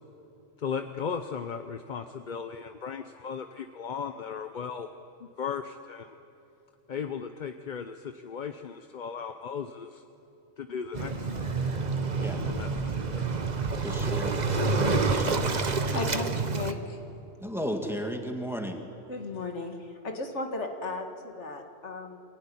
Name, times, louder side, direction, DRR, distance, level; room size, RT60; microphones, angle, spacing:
voice 1, 0.6-4.9 5.2-6.2 6.9-10.0 10.6-11.5 12.4-13.3, left 6 dB, 45° left, 7 dB, 0.8 m, -36 dB
Waves surf, 10.9-16.7, right 3 dB, 35° right, 1.1 m, -28 dB
voice 2, 13.8-14.4 14.7-15.5 17.4-18.8, equal, ahead, 3 dB, 2.0 m, -34 dB
voice 3, 15.9-17.0 19.1-22.2, left 2 dB, 65° left, 4 dB, 2.1 m, -36 dB
25.5 x 16.0 x 9.9 m, 2.8 s
omnidirectional pair, 1.3 m